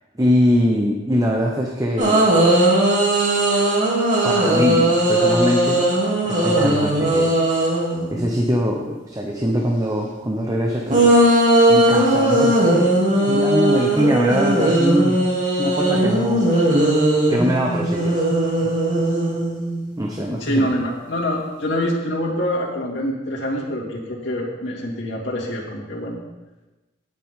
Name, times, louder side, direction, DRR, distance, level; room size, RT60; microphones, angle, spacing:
voice 1, 0.2-2.2 4.2-7.3 8.1-11.2 11.7-15.2 15.6-16.8 17.3-18.2 20.0-20.7, equal, 20° right, 0 dB, 1.0 m, -22 dB
sound 1, 2.0-8.3 10.9-20.0, right 1 dB, 40° right, 3.0 m, -18 dB
voice 2, 20.4-26.2, equal, 65° left, -4 dB, 2.5 m, -25 dB
18.0 x 7.5 x 3.8 m, 1.1 s
head